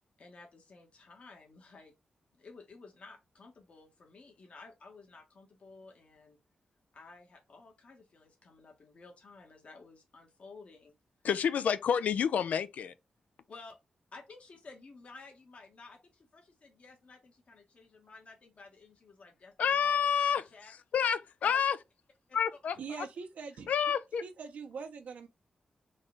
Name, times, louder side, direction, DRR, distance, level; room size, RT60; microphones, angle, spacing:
voice 1, 0.2-1.9 2.4-6.4 6.9-10.9 13.5-13.8 14.1-20.1 20.5-20.7 21.4-21.6, left 3 dB, 55° left, 1.3 m, -53 dB
voice 2, 11.2-12.9 19.6-20.4 20.9-21.8 22.3-22.8 23.7-24.2, left 7 dB, 90° left, 0.4 m, -28 dB
voice 3, 22.8-23.7 24.2-25.3, right 5 dB, 85° right, 0.8 m, -42 dB
4.0 x 2.4 x 3.7 m
cardioid pair, 90°, 2 cm